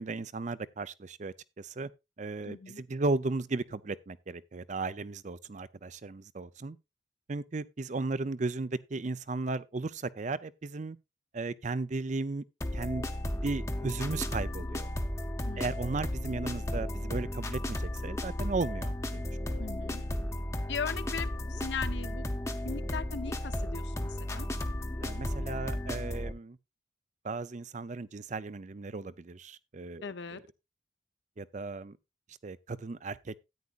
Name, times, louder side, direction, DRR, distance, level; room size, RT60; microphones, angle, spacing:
voice 1, 0.0-1.9 2.2-6.8 7.3-11.0 11.3-12.4 12.7-13.1 13.4-14.9 15.6-19.6 25.0-26.6 27.2-30.1 31.4-32.0 32.4-33.3, right 3 dB, 40° right, 0.5 m, -35 dB
voice 2, 2.5-2.8 15.4-15.8 19.6-20.0 20.7-22.2 22.6-24.5 30.0-30.4, left 5 dB, 65° left, 0.8 m, -38 dB
sound 1, 12.6-26.3, left 1 dB, 15° left, 0.8 m, -34 dB
13.5 x 9.6 x 2.4 m
head